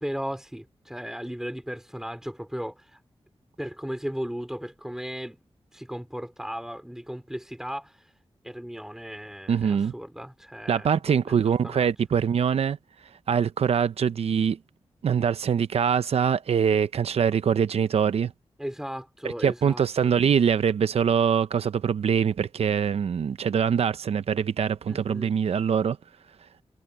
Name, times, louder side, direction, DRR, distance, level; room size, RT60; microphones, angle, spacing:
voice 1, 0.0-3.0 3.6-5.4 5.7-8.1 8.4-11.9 18.6-20.1 24.9-25.3, equal, 5° right, 3.1 m, -36 dB
voice 2, 9.5-9.9 10.7-12.8 13.3-14.6 15.0-18.3 19.4-26.0, right 7 dB, 85° right, 0.6 m, -23 dB
cardioid pair, 60°, 10 cm